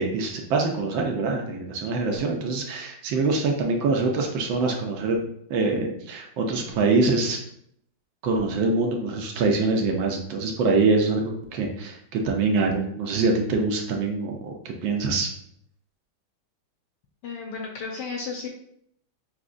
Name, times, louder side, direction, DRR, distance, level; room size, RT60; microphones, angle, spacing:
voice 1, 0.0-5.2 5.5-7.4 8.2-15.3, right 3 dB, 75° right, 2 dB, 1.3 m, -24 dB
voice 2, 17.2-18.5, left 4 dB, 70° left, 0 dB, 1.1 m, -33 dB
6.0 x 2.8 x 2.5 m, 0.70 s
omnidirectional pair, 2.3 m